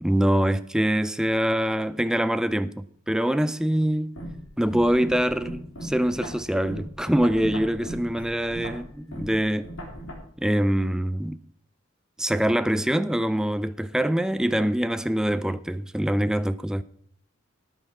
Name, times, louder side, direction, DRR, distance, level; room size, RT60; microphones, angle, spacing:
voice 1, 0.0-4.1 4.6-9.7 10.4-11.4 12.2-16.8, equal, 5° right, 0.4 m, -24 dB
sound 1, 4.2-10.1, equal, 65° left, 3.8 m, -37 dB
13.5 x 9.3 x 4.7 m
head